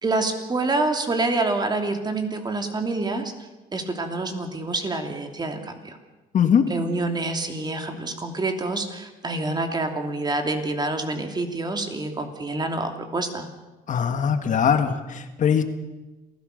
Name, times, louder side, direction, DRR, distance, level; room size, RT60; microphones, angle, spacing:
voice 1, 0.0-3.3 3.7-6.0 6.7-13.5, right 2 dB, 25° right, 5 dB, 2.9 m, -27 dB
voice 2, 6.3-6.7 13.9-15.6, left 7 dB, 50° left, 8 dB, 1.8 m, -21 dB
27.5 x 16.0 x 6.6 m, 1.1 s
cardioid pair, 110°, 17 cm